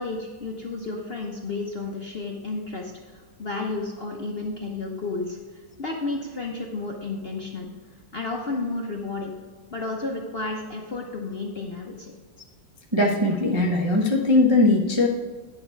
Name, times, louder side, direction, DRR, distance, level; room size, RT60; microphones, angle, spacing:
voice 1, 0.0-5.4 5.8-7.7 8.1-9.3 9.7-12.1, left 3 dB, 45° left, 0 dB, 0.8 m, -32 dB
voice 2, 12.9-15.1, left 2 dB, 30° right, -2 dB, 0.5 m, -20 dB
9.6 x 6.8 x 4.5 m, 1.5 s
omnidirectional pair, 2.1 m